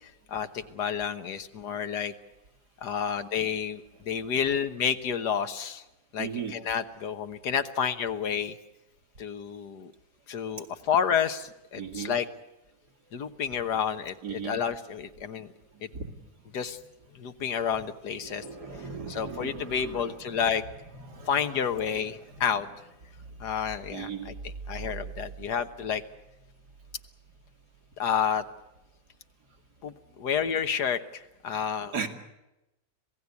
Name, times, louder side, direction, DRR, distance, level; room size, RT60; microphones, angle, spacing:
voice 1, 0.3-2.1 2.8-5.8 6.1-8.5 9.2-9.9 10.3-12.3 13.1-15.5 15.8-15.9 16.5-16.8 17.1-18.4 19.1-20.6 21.3-22.7 23.4-26.0 28.0-28.4 29.8-32.0, left 7 dB, 85° left, 10 dB, 1.8 m, -30 dB
voice 2, 6.2-6.6 11.7-12.1 14.2-14.6 15.9-16.2 18.2-20.4 20.9-22.5 23.2-23.3 23.9-24.3 31.9-32.1, right 6 dB, 80° right, 5 dB, 2.8 m, -38 dB
26.5 x 17.5 x 8.4 m, 0.96 s
omnidirectional pair, 1.7 m